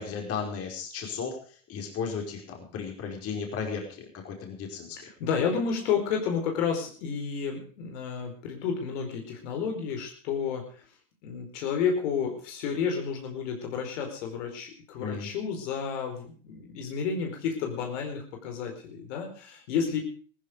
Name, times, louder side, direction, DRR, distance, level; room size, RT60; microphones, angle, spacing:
voice 1, 0.0-5.1 15.0-15.3, left 5 dB, 35° left, 2 dB, 5.0 m, -35 dB
voice 2, 5.2-10.8 11.2-20.0, left 6 dB, 65° left, 3 dB, 4.7 m, -31 dB
16.0 x 14.5 x 5.1 m, 0.41 s
hypercardioid pair, 115°, 39 cm